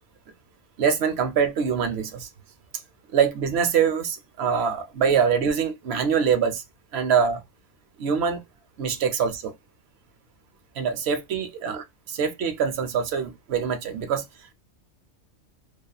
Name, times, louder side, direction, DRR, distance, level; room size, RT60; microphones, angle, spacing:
voice 1, 0.8-2.3 3.1-6.6 6.9-7.4 8.0-8.4 8.8-9.5 10.8-14.2, right 7 dB, 65° right, 0.8 m, -24 dB
2.8 x 2.3 x 2.2 m
omnidirectional pair, 1.3 m